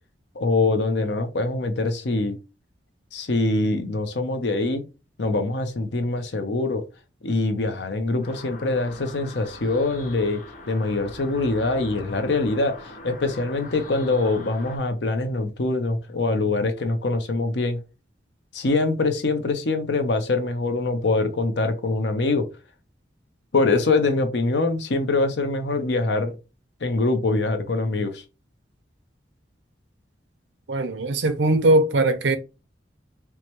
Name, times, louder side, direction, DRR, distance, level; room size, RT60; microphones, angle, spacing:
voice 1, 0.4-2.4 3.1-4.8 5.2-6.8 7.2-17.8 18.5-22.5 23.5-26.4 26.8-28.2, left 3 dB, 75° left, 0.7 m, -24 dB
sound 1, 8.2-14.8, left 2 dB, 45° left, 1.0 m, -42 dB
voice 2, 30.7-32.4, right 2 dB, 80° right, 0.6 m, -20 dB
4.6 x 2.2 x 3.0 m
head